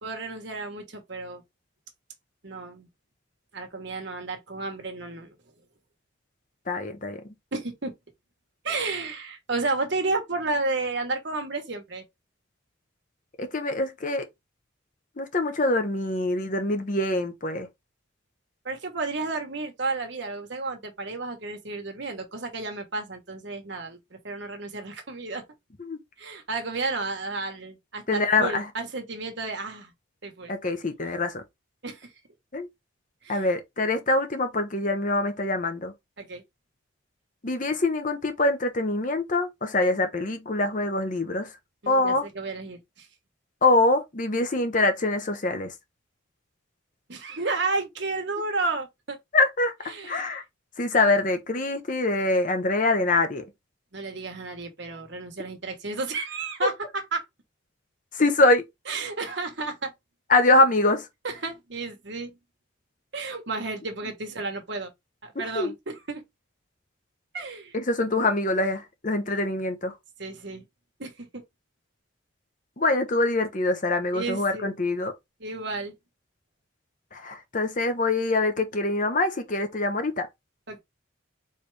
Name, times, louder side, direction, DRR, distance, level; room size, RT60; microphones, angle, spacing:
voice 1, 0.0-1.4 2.4-2.9 3.5-5.4 7.5-7.9 8.6-12.0 18.6-25.4 26.2-29.9 30.2-30.5 31.8-32.1 33.2-33.5 36.2-36.4 41.8-43.1 47.1-49.2 49.9-50.3 53.9-56.7 57.1-57.2 58.9-59.9 61.2-62.4 63.1-64.9 65.2-66.2 67.3-67.7 70.2-70.6 71.0-71.4 74.1-74.7 75.4-75.9 80.7-80.8, right 3 dB, 60° right, 1.3 m, -32 dB
voice 2, 6.7-7.3 13.4-14.3 15.2-17.7 25.8-26.0 28.1-28.6 30.5-31.4 32.5-32.7 33.3-35.9 37.4-41.5 41.9-42.2 43.6-45.7 49.3-50.4 50.8-53.4 58.1-58.6 60.3-61.1 65.3-65.7 67.7-70.0 72.8-75.1 77.1-80.3, left 2 dB, 40° left, 0.8 m, -24 dB
4.3 x 3.3 x 3.3 m
head